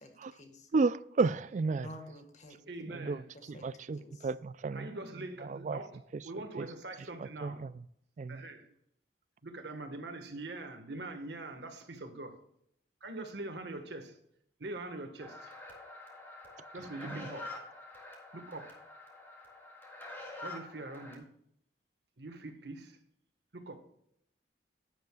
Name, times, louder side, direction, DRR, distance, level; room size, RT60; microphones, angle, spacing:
voice 1, 0.0-0.7 1.7-2.6 3.3-3.7 4.0-4.1 4.7-5.1, left 1 dB, 40° left, 5 dB, 1.6 m, -51 dB
voice 2, 0.7-1.9 2.9-5.8 6.1-6.7 7.0-7.9 8.2-8.4 17.0-17.3, right 4 dB, 40° right, 17 dB, 0.3 m, -33 dB
voice 3, 2.7-3.2 4.7-5.9 6.2-7.6 8.3-8.7 9.4-12.4 13.0-14.2 14.6-15.5 16.7-17.5 18.3-18.8 20.4-21.3 22.2-23.0 23.5-23.8, right 2 dB, 75° right, 6 dB, 1.4 m, -43 dB
sound 1, 15.2-21.1, left 2 dB, 10° left, 1.8 m, -47 dB
10.5 x 9.2 x 2.3 m, 0.71 s
head